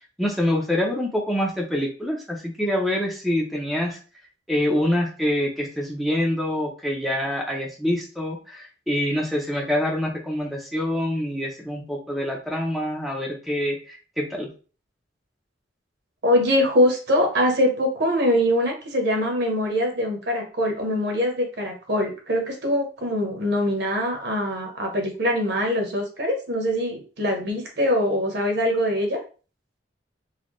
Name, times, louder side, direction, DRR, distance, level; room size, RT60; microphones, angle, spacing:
voice 1, 0.2-4.0 4.5-14.5, left 1 dB, ahead, -1 dB, 0.6 m, -25 dB
voice 2, 16.2-29.2, equal, 65° right, 2 dB, 1.0 m, -23 dB
4.1 x 2.2 x 3.1 m, 0.37 s
head